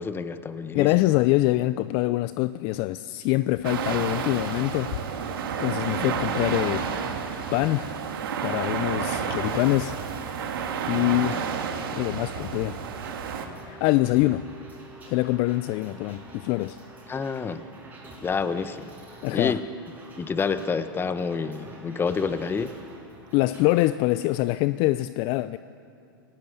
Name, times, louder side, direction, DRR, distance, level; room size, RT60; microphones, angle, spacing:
voice 1, 0.0-1.1 17.1-17.6 18.2-18.9 19.3-19.6 20.2-22.7, left 5 dB, 20° left, 12 dB, 1.2 m, -28 dB
voice 2, 0.7-5.2 5.6-6.9 7.5-7.9 8.4-10.0 10.9-11.5 11.9-12.8 13.6-14.5 15.1-16.8 19.2-19.6 23.3-25.6, left 18 dB, 45° left, 15 dB, 0.5 m, -24 dB
sound 1, 3.6-13.5, right 6 dB, 70° right, 2.6 m, -30 dB
sound 2, 9.1-23.9, right 2 dB, 15° right, 5.8 m, -47 dB
27.0 x 17.5 x 8.1 m, 2.6 s
hypercardioid pair, 100°, 12 cm